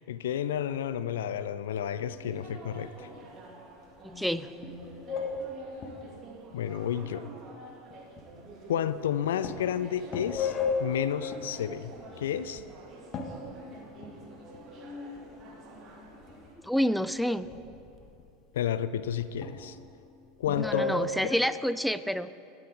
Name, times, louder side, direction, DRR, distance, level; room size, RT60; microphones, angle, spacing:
voice 1, 0.0-3.1 6.5-7.3 8.7-10.5 10.8-11.9 12.2-12.6 18.5-19.8 20.4-21.4, left 9 dB, 70° left, 14 dB, 0.4 m, -31 dB
sound 1, 2.0-2.7 3.1-3.3 3.8-4.3 4.6-6.3 7.0-7.1 7.9-8.5 8.9-9.1 9.4-12.6 13.1-15.8 16.0-16.8 17.4-18.3 18.7-20.2 20.4-21.3, left 4 dB, 40° left, 1.5 m, -36 dB
sound 2, 2.2-16.5, right 2 dB, 40° right, 2.8 m, -49 dB
voice 2, 4.0-4.5 16.6-17.5 20.5-22.3, equal, ahead, 14 dB, 0.4 m, -28 dB
21.5 x 9.2 x 3.9 m, 2.6 s
figure-of-eight pair, 80°, 0 cm